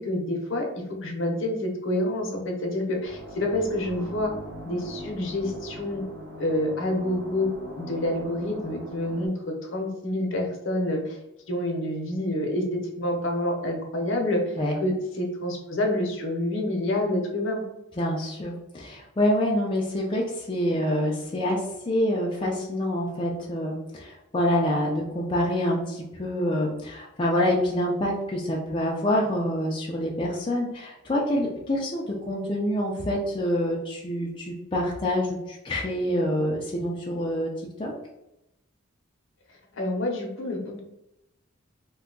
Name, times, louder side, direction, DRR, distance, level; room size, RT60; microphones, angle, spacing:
voice 1, 0.0-4.3 4.6-6.0 6.4-7.5 7.8-11.2 11.5-17.6 39.7-40.8, left 1 dB, 60° left, 2 dB, 0.7 m, -28 dB
sound 1, 3.0-9.3, equal, 55° right, 0.9 m, -41 dB
voice 2, 18.0-37.5 37.8-37.9, left 1 dB, 25° left, -2 dB, 0.4 m, -26 dB
2.6 x 2.2 x 3.7 m, 0.89 s
head